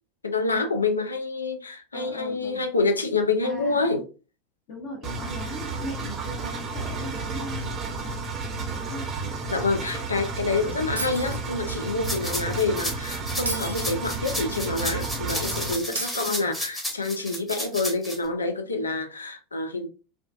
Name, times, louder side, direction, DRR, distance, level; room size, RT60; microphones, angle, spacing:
voice 1, 0.2-4.0 9.5-19.9, left 3 dB, 80° left, 0.4 m, -27 dB
voice 2, 1.9-2.6 3.4-3.9 4.7-9.1 10.6-10.8 16.1-16.5, left 1 dB, 50° left, 0.8 m, -39 dB
Engine, 5.0-15.7, right 3 dB, 30° right, 0.6 m, -32 dB
Shatter, 11.0-11.9 13.5-14.5 16.0-16.9, right 2 dB, 85° right, 0.5 m, -35 dB
sound 1, 12.0-18.2, left 1 dB, 5° left, 0.8 m, -32 dB
2.3 x 2.3 x 2.3 m
figure-of-eight pair, 80°, 0 cm